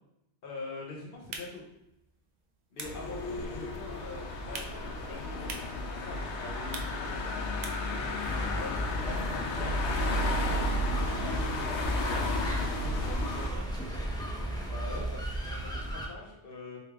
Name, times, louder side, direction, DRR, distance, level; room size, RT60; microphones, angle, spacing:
voice 1, 0.4-1.6 2.7-7.3 8.6-11.3 14.7-16.8, left 3 dB, 55° left, -3 dB, 1.0 m, -44 dB
sound 1, 1.1-8.0, right 3 dB, 60° right, 0.5 m, -47 dB
sound 2, 2.8-13.5, left 2 dB, 75° left, 0.9 m, -33 dB
sound 3, 8.2-16.1, right 1 dB, 5° left, 0.3 m, -35 dB
voice 2, 12.1-14.1, right 3 dB, 85° right, 0 dB, 1.1 m, -47 dB
3.4 x 2.5 x 3.4 m, 0.85 s
omnidirectional pair, 1.2 m